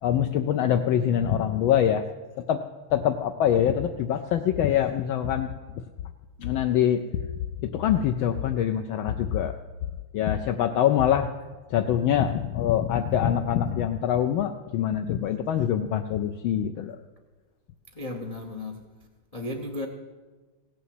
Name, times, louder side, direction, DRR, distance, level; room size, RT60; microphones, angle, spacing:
voice 1, 0.0-2.1 2.4-2.6 2.9-5.5 6.4-7.0 7.6-9.6 10.1-11.3 11.7-17.0, left 10 dB, 75° left, 6 dB, 1.3 m, -24 dB
voice 2, 17.9-18.8 19.3-19.9, left 2 dB, 50° left, 3 dB, 0.4 m, -34 dB
16.5 x 7.0 x 7.7 m, 1.3 s
omnidirectional pair, 2.4 m